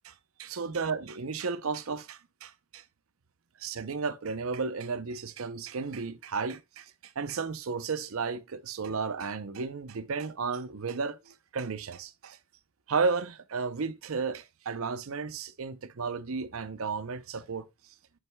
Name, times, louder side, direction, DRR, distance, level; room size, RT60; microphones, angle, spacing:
voice 1, 0.4-2.8 3.6-12.4 12.9-17.6, right 5 dB, 75° right, 0.6 m, -33 dB
8.8 x 6.6 x 2.2 m
head